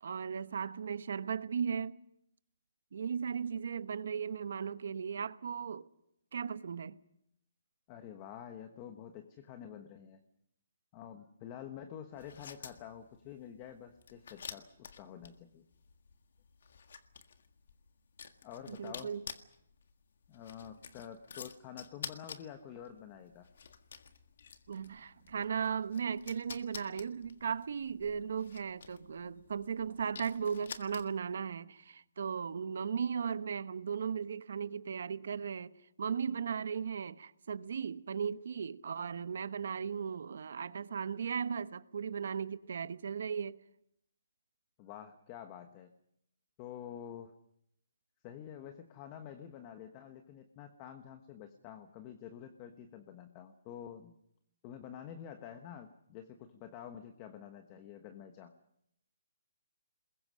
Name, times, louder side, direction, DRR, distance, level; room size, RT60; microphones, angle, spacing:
voice 1, 0.0-2.0 2.9-5.9 6.3-6.9 18.7-19.2 24.7-35.7 36.0-43.6, right 6 dB, 60° right, 1.0 m, -37 dB
voice 2, 7.9-10.2 10.9-15.6 18.4-19.1 20.3-23.5 44.8-45.9 46.6-47.3 48.2-54.2 54.6-58.6, left 9 dB, 20° left, 1.1 m, -48 dB
sound 1, 12.1-31.4, left 6 dB, 60° left, 1.7 m, -50 dB
27.5 x 21.5 x 6.3 m
hypercardioid pair, 170°, 0 cm